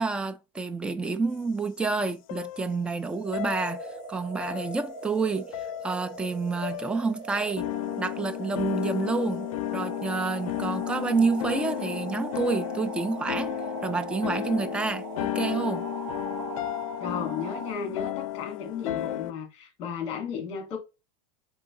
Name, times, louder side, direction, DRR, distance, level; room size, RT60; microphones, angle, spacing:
voice 1, 0.0-5.5 5.8-7.7 8.0-13.6 13.8-15.9, right 4 dB, 5° right, 0.3 m, -29 dB
sound 1, 2.3-3.0 3.3-4.1 4.4-5.2 5.5-6.3 6.6-7.1 7.6-19.3, left 15 dB, 85° left, 0.4 m, -34 dB
sound 2, 3.0-17.7, right 4 dB, 35° right, 2.6 m, -40 dB
voice 2, 17.0-20.8, left 6 dB, 35° left, 1.9 m, -34 dB
3.8 x 3.6 x 3.6 m
supercardioid pair, 155°, 17 cm